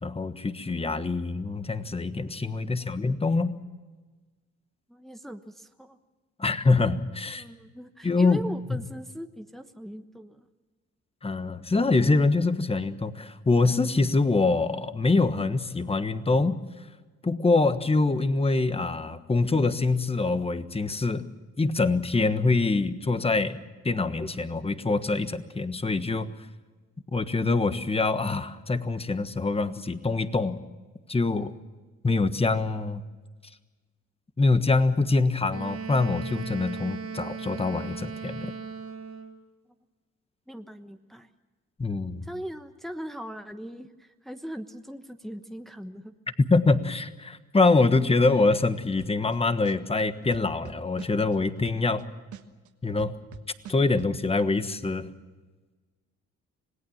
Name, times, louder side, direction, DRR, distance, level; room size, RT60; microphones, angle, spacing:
voice 1, 0.0-3.5 6.4-7.4 8.0-8.4 8.7-8.8 11.2-16.6 17.2-21.3 21.6-23.6 23.8-26.3 27.1-30.6 31.1-31.5 32.0-33.0 34.4-38.5 41.8-42.3 46.5-52.0 52.8-53.1 53.7-55.1, left 3 dB, 20° left, 11 dB, 1.4 m, -24 dB
voice 2, 4.9-6.0 7.4-10.5 40.5-41.3 42.2-46.1, equal, ahead, 6 dB, 1.1 m, -40 dB
Wind instrument woodwind instrument, 35.5-39.4, right 6 dB, 50° right, 1.8 m, -37 dB
sound 1, 49.0-49.3 49.6-52.0 52.3-54.1, right 10 dB, 75° right, 1.5 m, -44 dB
26.5 x 18.0 x 7.2 m, 1.3 s
cardioid pair, 90°, 30 cm